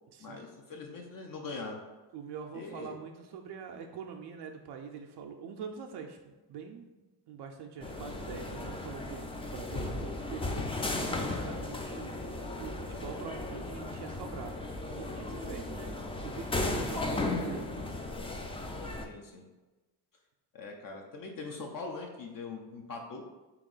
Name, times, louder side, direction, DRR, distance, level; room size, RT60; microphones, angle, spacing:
voice 1, 0.2-1.8 2.5-2.9 19.0-19.5 20.5-23.2, left 3 dB, 50° left, 1 dB, 0.6 m, -42 dB
voice 2, 2.1-12.1 12.5-16.0 16.2-17.9, right 6 dB, 70° right, 3 dB, 0.5 m, -44 dB
sound 1, 7.8-19.1, left 2 dB, 15° left, 0.4 m, -36 dB
3.6 x 3.0 x 3.9 m, 1.1 s
cardioid pair, 85°, 42 cm